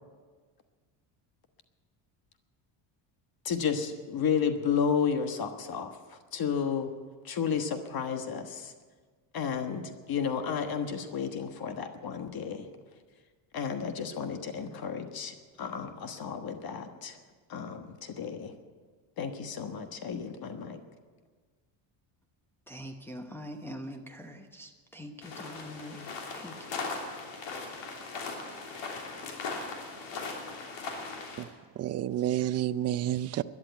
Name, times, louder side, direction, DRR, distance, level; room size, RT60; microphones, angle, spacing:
voice 1, 3.4-6.9 7.2-8.7 9.3-12.7 13.5-17.2 17.5-18.5 19.2-20.8, left 7 dB, 45° left, 7 dB, 1.4 m, -32 dB
voice 2, 22.7-26.9, equal, 5° left, 2 dB, 1.0 m, -44 dB
sound 1, 25.2-31.4, left 4 dB, 60° left, 3.3 m, -39 dB
voice 3, 31.4-33.4, right 12 dB, 35° right, 13 dB, 0.5 m, -30 dB
13.0 x 11.0 x 9.2 m, 1.5 s
cardioid pair, 115°, 49 cm